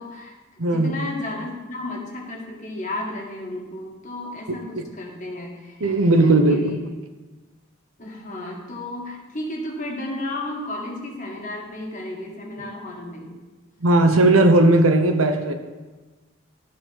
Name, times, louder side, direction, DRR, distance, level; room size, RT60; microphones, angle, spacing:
voice 1, 0.0-6.7 8.0-13.3, left 1 dB, 40° left, -1 dB, 1.8 m, -33 dB
voice 2, 0.6-1.0 4.5-4.9 5.8-6.8 13.8-15.5, right 2 dB, 90° right, 7 dB, 0.9 m, -17 dB
12.5 x 4.6 x 5.9 m, 1.2 s
head